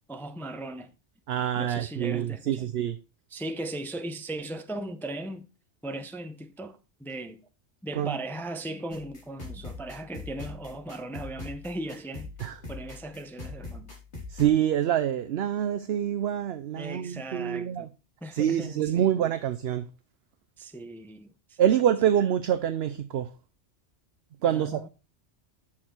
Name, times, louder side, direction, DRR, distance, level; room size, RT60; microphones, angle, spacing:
voice 1, 0.1-0.9 1.5-2.7 3.3-5.5 5.8-7.4 7.8-12.3 12.7-13.9 16.7-17.9 18.2-19.1 20.6-21.6 24.5-24.9, right 1 dB, ahead, 0.5 m, -38 dB
voice 2, 1.3-3.0 8.0-8.1 12.4-12.6 14.3-17.9 18.3-19.9 21.6-23.3 24.4-24.9, right 10 dB, 65° right, 0.8 m, -26 dB
sound 1, 8.9-14.4, left 3 dB, 75° left, 3.8 m, -42 dB
7.4 x 6.5 x 4.4 m
omnidirectional pair, 1.2 m